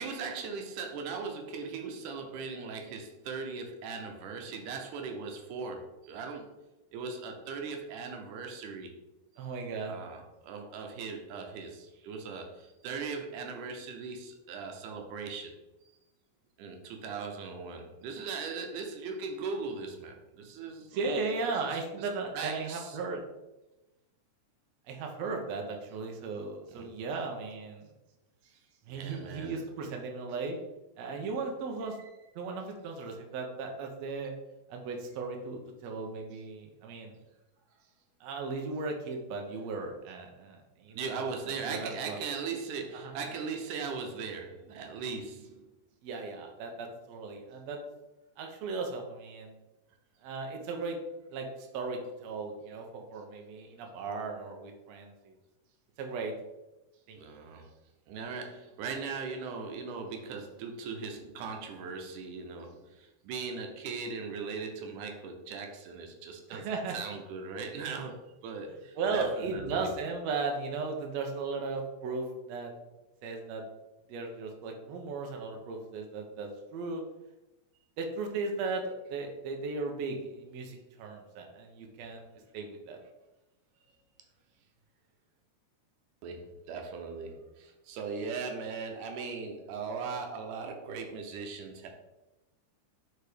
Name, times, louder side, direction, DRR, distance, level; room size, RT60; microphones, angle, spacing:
voice 1, 0.0-6.5 6.9-8.9 9.3-9.4 9.9-15.6 16.6-22.1 22.3-23.0 26.7-26.9 28.4-28.6 28.9-29.6 32.0-32.1 40.9-45.7 57.2-57.7 58.1-69.9 86.2-91.9, right 5 dB, 85° right, 3 dB, 2.4 m, -39 dB
voice 2, 9.4-9.9 20.9-23.2 24.9-27.9 28.9-30.6 31.0-32.0 32.4-34.3 34.7-37.2 38.2-42.2 43.0-43.1 46.0-47.8 48.4-49.6 50.2-51.0 51.3-55.4 56.0-56.3 57.1-57.2 66.5-67.0 69.0-72.7 73.2-73.6 74.1-77.0 78.0-82.2 82.5-83.0, right 4 dB, 70° right, 2 dB, 1.9 m, -36 dB
4.8 x 4.8 x 5.0 m, 0.99 s
omnidirectional pair, 3.5 m